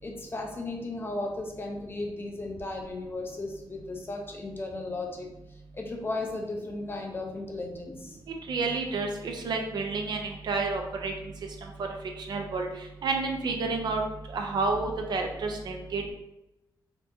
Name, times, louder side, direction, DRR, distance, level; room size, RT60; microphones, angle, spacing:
voice 1, 0.0-5.3 5.7-8.2, left 2 dB, 30° left, 2 dB, 0.6 m, -35 dB
voice 2, 8.5-11.1 12.3-12.7 13.0-14.0 14.3-16.0, right 3 dB, 60° right, 3 dB, 0.6 m, -29 dB
4.3 x 2.8 x 2.7 m, 0.92 s
wide cardioid pair, 145°, 8 cm